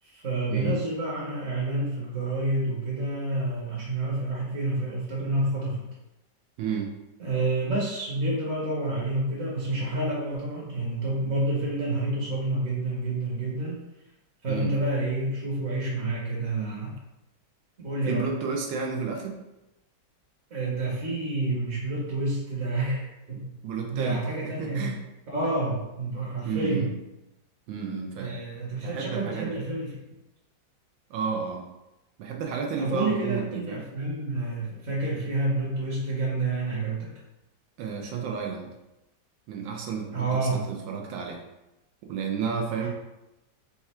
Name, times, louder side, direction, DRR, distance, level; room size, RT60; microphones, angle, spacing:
voice 1, 0.0-5.9 7.2-13.8 14.4-17.0 17.8-18.3 20.5-23.5 23.9-24.9 25.3-26.9 28.1-30.0 32.8-37.1 40.1-40.6 42.8-42.9, right 2 dB, 50° right, -5 dB, 1.1 m, -29 dB
voice 2, 6.6-6.9 14.5-14.7 18.0-19.4 23.6-25.0 26.4-26.9 27.7-28.3 28.8-29.6 31.1-31.7 32.2-33.8 37.8-38.7 39.5-41.4 42.1-42.9, right 6 dB, 90° right, 1 dB, 1.4 m, -31 dB
4.4 x 2.4 x 4.2 m, 0.95 s
omnidirectional pair, 2.0 m